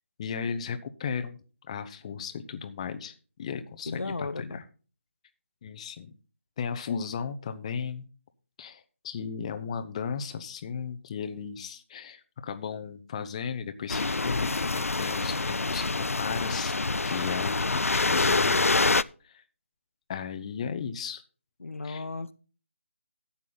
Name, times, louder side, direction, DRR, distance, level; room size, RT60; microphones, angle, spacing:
voice 1, 0.2-4.6 5.6-6.1 6.6-8.1 8.6-16.7 17.0-18.6 19.2-19.4 20.1-21.2 21.8-22.0, left 6 dB, 25° left, 0.8 m, -35 dB
voice 2, 3.9-4.6 21.6-22.3, left 3 dB, 70° left, 0.8 m, -35 dB
sound 1, 13.9-19.0, left 3 dB, 90° left, 0.4 m, -26 dB
12.0 x 8.3 x 3.9 m
figure-of-eight pair, 160°, 7 cm